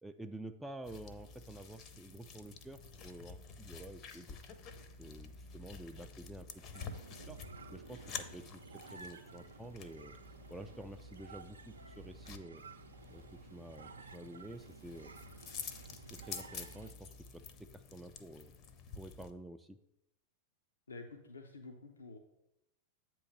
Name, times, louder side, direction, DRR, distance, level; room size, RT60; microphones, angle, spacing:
voice 1, 0.0-4.4 5.0-7.4 7.7-10.2 10.5-12.6 13.1-15.1 15.9-18.5 18.9-19.8, right 1 dB, 5° right, 5 dB, 0.3 m, -50 dB
sound 1, 0.8-19.3, left 5 dB, 35° left, 0.6 m, -50 dB
sound 2, 6.7-16.9, right 4 dB, 70° right, 0.5 m, -54 dB
voice 2, 20.9-22.2, left 3 dB, 75° left, 3 dB, 0.6 m, -49 dB
8.2 x 3.1 x 6.3 m, 0.87 s
figure-of-eight pair, 90°, 0 cm